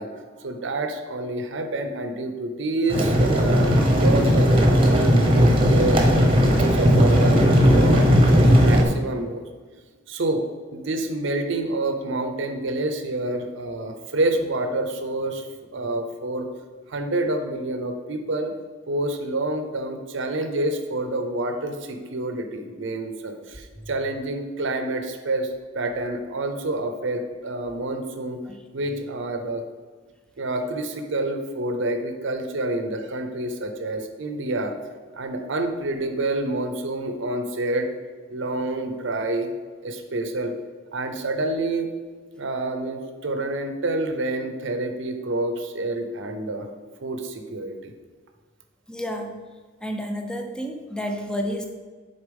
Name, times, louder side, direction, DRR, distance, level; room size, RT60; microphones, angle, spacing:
voice 1, 0.0-5.1 5.5-6.3 6.7-9.4 10.1-10.4 10.7-15.4 15.7-16.5 16.9-18.5 18.9-28.4 28.7-29.6 30.4-34.7 35.2-37.9 38.3-39.5 39.8-40.5 40.9-41.9 42.3-46.7 47.0-47.9, right 2 dB, 65° right, 6 dB, 0.7 m, -28 dB
sound 1, 2.9-8.8, equal, 30° right, 1.0 m, -17 dB
voice 2, 48.9-49.3 49.8-51.7, equal, 5° left, 4 dB, 0.6 m, -30 dB
6.9 x 4.1 x 5.2 m, 1.4 s
head